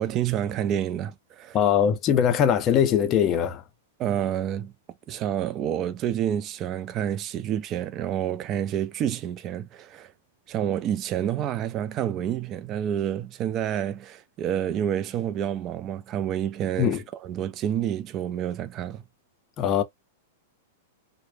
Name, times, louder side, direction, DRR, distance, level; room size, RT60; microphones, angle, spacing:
voice 1, 0.0-1.6 4.0-4.7 5.1-10.1 10.5-17.0 17.2-19.0, right 10 dB, 30° right, 0.3 m, -28 dB
voice 2, 1.5-3.6 16.8-17.0 19.6-19.8, left 8 dB, 30° left, 0.5 m, -21 dB
2.0 x 2.0 x 3.1 m
hypercardioid pair, 140°, 0 cm